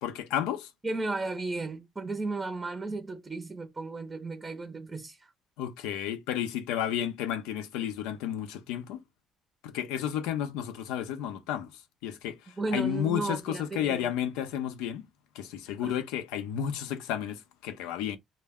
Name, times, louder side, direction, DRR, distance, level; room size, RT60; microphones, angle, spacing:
voice 1, 0.0-0.7 5.6-9.0 9.6-15.1 15.3-18.2, left 10 dB, 85° left, 0.5 m, -32 dB
voice 2, 0.8-5.3 12.6-14.1 15.8-15.9, right 3 dB, 25° right, 0.6 m, -34 dB
2.2 x 2.1 x 3.5 m
supercardioid pair, 70°, 0 cm